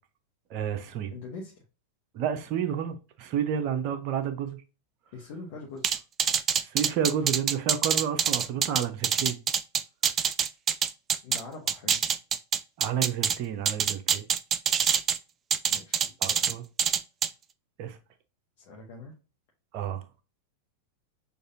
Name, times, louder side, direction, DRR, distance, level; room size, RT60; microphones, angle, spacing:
voice 1, 0.5-1.1 2.1-4.6 6.6-9.4 12.8-14.2 16.2-16.6 17.8-18.0 19.7-20.0, right 8 dB, 40° right, 0.7 m, -30 dB
voice 2, 1.1-1.6 5.1-6.0 11.2-12.0 15.7-16.0 18.6-19.1, left 3 dB, 50° left, 1.0 m, -42 dB
sound 1, 5.8-11.4 11.7-13.4 13.7-15.2 15.5-16.5 16.8-17.3, right 7 dB, 25° right, 0.3 m, -25 dB
6.4 x 2.6 x 2.6 m
figure-of-eight pair, 90°, 0 cm